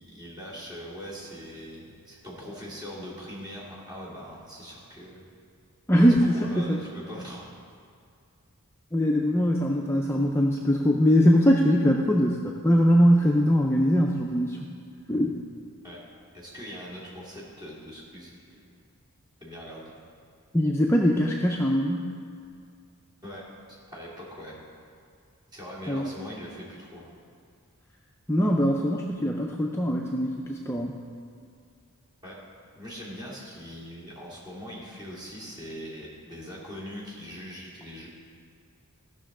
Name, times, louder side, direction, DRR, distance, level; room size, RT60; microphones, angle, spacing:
voice 1, 0.0-5.3 6.2-7.6 15.8-16.0 16.3-18.6 19.4-19.9 23.2-23.4 23.9-24.6 25.5-27.1 32.2-32.4 32.7-38.1, equal, 20° right, -7 dB, 2.5 m, -41 dB
voice 2, 5.9-6.8 8.9-14.7 15.1-15.4 20.5-22.1 25.9-26.1 28.3-31.0, equal, 10° left, 0 dB, 0.4 m, -22 dB
15.0 x 6.1 x 3.8 m, 2.4 s
head